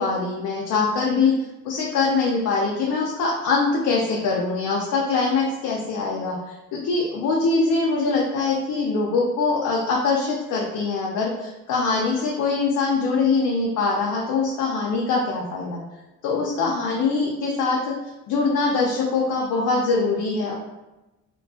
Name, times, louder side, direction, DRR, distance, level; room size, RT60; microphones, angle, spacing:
voice 1, 0.0-1.3 1.6-6.4 6.7-15.8 16.2-17.9 18.3-20.5, left 4 dB, 80° left, -3 dB, 0.5 m, -23 dB
2.4 x 2.2 x 2.7 m, 1.0 s
cardioid pair, 90°, 30 cm